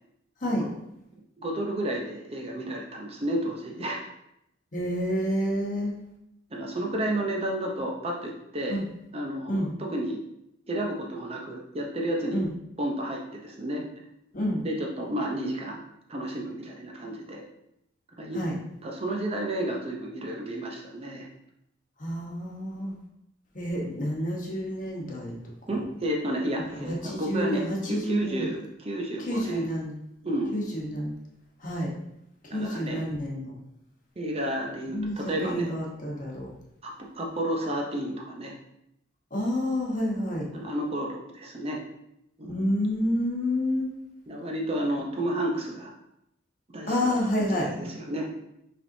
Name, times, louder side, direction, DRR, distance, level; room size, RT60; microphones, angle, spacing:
voice 1, 1.4-4.0 6.5-8.8 9.1-10.2 10.7-12.4 12.8-13.9 14.6-15.8 16.1-17.4 18.2-18.4 18.8-21.3 25.7-29.7 30.2-30.5 32.5-33.0 34.2-35.7 36.8-38.5 40.5-41.8 42.4-42.6 44.3-45.9 46.7-48.4, right 1 dB, 30° right, 0 dB, 0.6 m, -31 dB
voice 2, 4.7-5.9 8.7-8.8 9.5-9.7 12.3-12.5 14.3-14.6 18.3-18.5 22.0-22.9 23.5-25.4 26.6-28.5 29.3-29.9 30.5-31.1 31.6-31.9 32.5-33.5 34.9-36.5 39.3-40.5 42.4-43.9 46.9-47.7, equal, 45° left, -2 dB, 1.0 m, -29 dB
5.4 x 3.4 x 2.6 m, 0.81 s
head